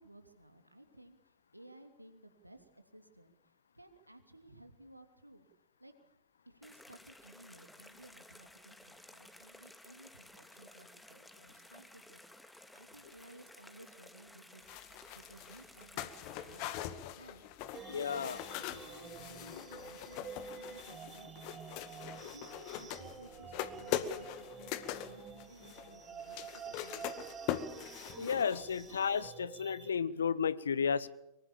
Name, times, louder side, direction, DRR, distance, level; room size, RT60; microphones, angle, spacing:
voice 1, 0.0-5.5 5.8-5.9 6.5-14.7 15.1-18.4 18.7-27.4, right 1 dB, 85° right, 7 dB, 2.8 m, -58 dB
sound 1, 6.6-16.6, left 1 dB, 5° left, 2.3 m, -56 dB
sound 2, 14.7-29.0 29.2-29.3, left 11 dB, 45° left, 2.0 m, -42 dB
sound 3, 17.7-29.9, right 7 dB, 20° right, 2.2 m, -49 dB
voice 2, 17.8-18.4 28.2-31.1, left 6 dB, 70° left, 19 dB, 1.1 m, -33 dB
24.5 x 23.5 x 7.3 m, 0.87 s
figure-of-eight pair, 90°, 0 cm